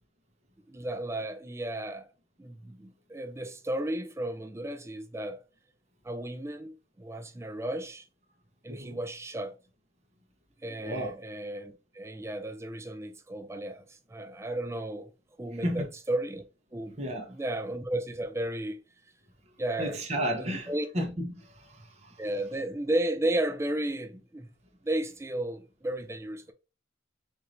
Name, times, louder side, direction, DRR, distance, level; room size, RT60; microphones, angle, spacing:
voice 1, 0.7-2.1 2.4-5.4 6.0-8.1 8.6-9.5 10.6-15.1 15.4-16.4 16.7-17.0 17.3-18.8 19.6-20.0 20.4-20.9 22.2-24.5 24.8-26.5, right 1 dB, 15° right, 0.4 m, -34 dB
voice 2, 8.7-9.0 10.8-11.1 15.6-15.8 17.0-17.3 19.8-22.2, equal, 35° right, 0.9 m, -33 dB
4.5 x 2.6 x 3.1 m
head